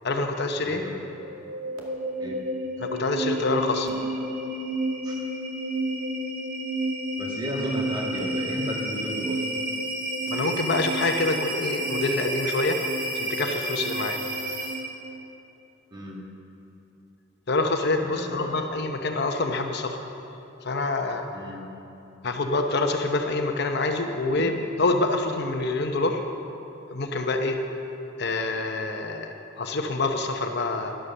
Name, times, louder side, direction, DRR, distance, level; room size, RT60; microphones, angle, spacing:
voice 1, 0.0-0.8 2.8-3.9 10.3-12.8 13.1-14.2 17.5-20.0 20.6-21.3 22.2-26.2 26.9-27.6 28.2-31.0, left 2 dB, 55° left, 4 dB, 0.8 m, -26 dB
voice 2, 0.6-1.1 2.2-2.5 5.0-5.2 7.2-9.4 15.9-16.2 17.9-18.6 21.3-21.7, equal, 20° right, -1 dB, 1.7 m, -34 dB
sound 1, 1.1-15.0, right 1 dB, 85° right, 2.0 m, -30 dB
11.5 x 11.5 x 6.7 m, 2.9 s
head